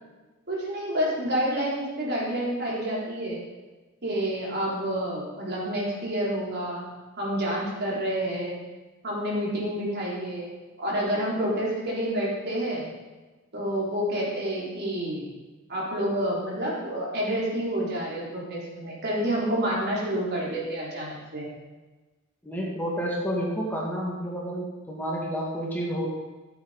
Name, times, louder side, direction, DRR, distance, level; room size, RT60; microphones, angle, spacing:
voice 1, 0.5-3.4 4.0-8.6 9.0-12.9 13.5-15.3 15.7-21.5, equal, 55° right, -4 dB, 3.7 m, -29 dB
voice 2, 22.4-26.1, equal, 10° left, -4 dB, 2.2 m, -30 dB
14.5 x 8.1 x 5.1 m, 1.2 s
head